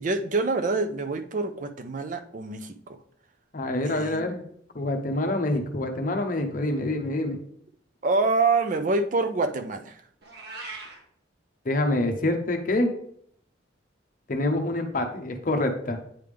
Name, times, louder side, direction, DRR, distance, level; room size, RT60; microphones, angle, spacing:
voice 1, 0.0-3.0 3.8-4.2 8.0-9.9, right 3 dB, 40° right, 8 dB, 0.4 m, -26 dB
voice 2, 3.5-4.4 4.7-7.4 11.7-12.9 14.3-16.0, left 1 dB, 45° left, 5 dB, 0.7 m, -26 dB
Meow, 10.2-11.0, right 3 dB, 55° right, 1.1 m, -39 dB
8.9 x 3.4 x 3.4 m, 0.65 s
head